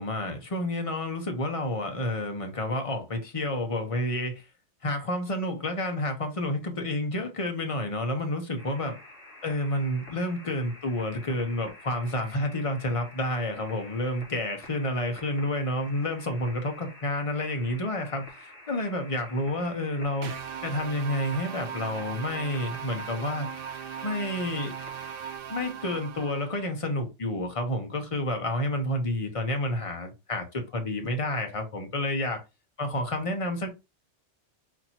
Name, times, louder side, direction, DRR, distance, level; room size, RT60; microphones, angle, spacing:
voice 1, 0.0-4.4 4.8-9.0 9.4-20.3 20.6-23.5 24.0-24.7 25.5-32.4 32.8-33.7, left 1 dB, 30° left, 0.9 m, -30 dB
sound 1, 8.6-25.4, left 1 dB, 50° left, 2.0 m, -49 dB
sound 2, 20.2-26.7, right 8 dB, 60° right, 0.7 m, -38 dB
4.3 x 2.8 x 4.3 m
omnidirectional pair, 1.2 m